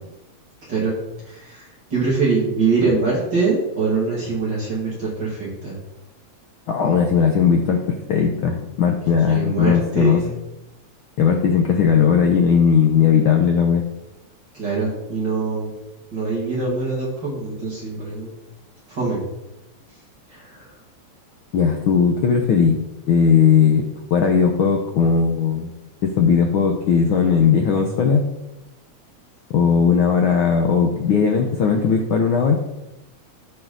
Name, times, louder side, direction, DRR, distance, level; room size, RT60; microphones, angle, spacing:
voice 1, 0.6-1.0 1.2-5.7 9.3-10.3 14.5-15.7 16.1-18.3 18.9-19.2 20.3-20.7, right 4 dB, 40° right, -6 dB, 2.6 m, -23 dB
voice 2, 6.7-10.2 11.2-13.8 21.5-22.8 23.1-23.8 24.1-25.7 26.0-28.2 29.5-32.5, left 6 dB, 85° left, 2 dB, 1.1 m, -17 dB
13.5 x 4.8 x 3.9 m, 0.95 s
omnidirectional pair, 3.3 m